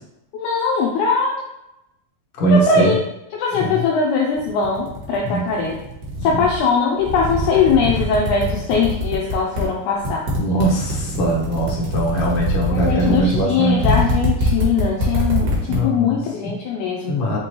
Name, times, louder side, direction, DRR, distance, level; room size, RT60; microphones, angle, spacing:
voice 1, 0.3-1.4 2.5-3.0 3.3-5.8 6.2-10.2 12.7-17.2, left 5 dB, 85° left, -1 dB, 1.8 m, -20 dB
voice 2, 2.4-2.9 3.6-3.8 5.2-5.7 6.2-6.4 10.4-13.8 15.7-16.2 17.1-17.4, right 1 dB, 65° left, -3 dB, 1.5 m, -21 dB
sound 1, 4.4-6.6 7.0-9.6 10.0-15.8, left 1 dB, 85° right, 3.0 m, -23 dB
5.8 x 3.1 x 2.9 m, 0.86 s
omnidirectional pair, 4.0 m